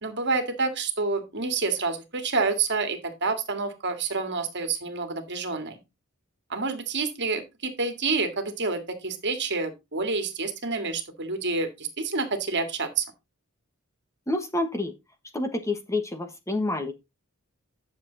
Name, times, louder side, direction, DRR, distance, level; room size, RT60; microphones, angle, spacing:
voice 1, 0.0-5.8 6.5-13.1, right 4 dB, 55° right, 7 dB, 2.3 m, -28 dB
voice 2, 14.3-14.9 15.3-16.9, left 2 dB, 15° left, 6 dB, 1.4 m, -28 dB
10.5 x 7.0 x 4.1 m, 0.24 s
head